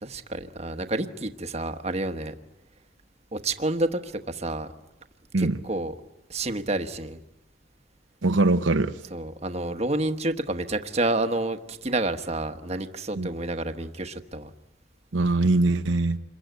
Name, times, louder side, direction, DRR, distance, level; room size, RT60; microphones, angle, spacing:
voice 1, 0.0-2.3 3.3-4.7 5.4-5.9 6.3-7.2 9.1-14.5, right 2 dB, 35° right, 7 dB, 1.2 m, -29 dB
voice 2, 8.2-8.9 13.2-13.3 15.1-16.2, right 2 dB, 75° right, 8 dB, 1.0 m, -22 dB
27.5 x 22.5 x 9.3 m, 0.86 s
head